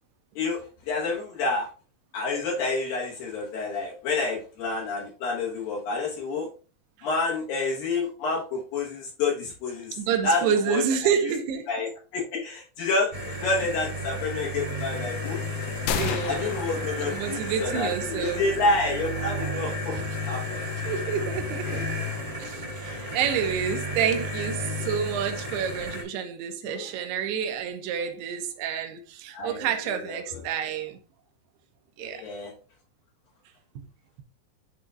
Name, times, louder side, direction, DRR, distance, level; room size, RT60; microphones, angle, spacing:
voice 1, 0.4-1.7 2.1-6.5 7.0-9.9 10.2-10.8 11.2-11.3 11.7-15.4 16.3-20.6 21.7-21.8 24.0-24.1 26.6-26.9 29.3-30.4 32.0-32.5, left 3 dB, 70° left, 2.4 m, -29 dB
voice 2, 10.0-11.7 16.0-16.6 17.0-18.4 20.9-21.9 22.4-31.0 32.0-32.3 33.8-33.9, right 8 dB, 80° right, 2.6 m, -29 dB
sound 1, 13.1-26.0, left 1 dB, 30° right, 1.0 m, -33 dB
sound 2, 15.9-17.8, left 7 dB, 85° left, 2.8 m, -32 dB
10.5 x 3.7 x 2.4 m
omnidirectional pair, 5.2 m